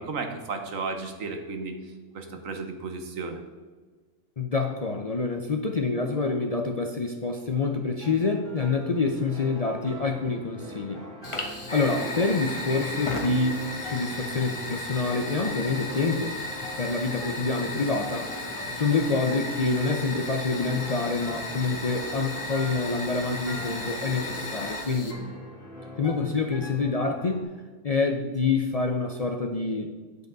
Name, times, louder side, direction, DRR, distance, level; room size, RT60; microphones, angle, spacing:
voice 1, 0.0-1.8 2.1-3.4, right 4 dB, 80° right, 5 dB, 1.5 m, -33 dB
voice 2, 4.4-11.0 11.7-16.4 16.8-18.3 18.7-25.2 26.0-27.5 27.8-29.9, left 4 dB, 40° left, 3 dB, 0.6 m, -27 dB
sound 1, 8.0-27.4, left 1 dB, 65° left, 2.8 m, -42 dB
Fire, 11.2-25.1, left 2 dB, 25° left, 1.1 m, -35 dB
9.1 x 8.1 x 4.0 m, 1.4 s
omnidirectional pair, 1.4 m